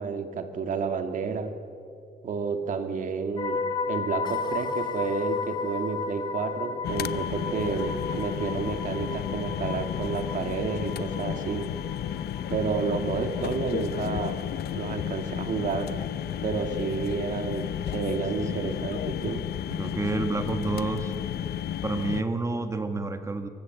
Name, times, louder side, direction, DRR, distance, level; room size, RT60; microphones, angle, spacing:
voice 1, 0.0-1.5 2.2-11.7 12.5-15.9 16.4-19.4, right 5 dB, 50° right, 7 dB, 2.0 m, -30 dB
sound 1, 3.4-13.4 13.7-14.0, left 4 dB, 25° left, 1.2 m, -34 dB
sound 2, 6.8-22.2, left 10 dB, 70° left, 0.7 m, -32 dB
voice 2, 19.7-21.1 21.8-23.5, right 3 dB, 15° right, 8 dB, 1.6 m, -29 dB
25.0 x 24.5 x 7.7 m, 2.7 s
wide cardioid pair, 170°, 17 cm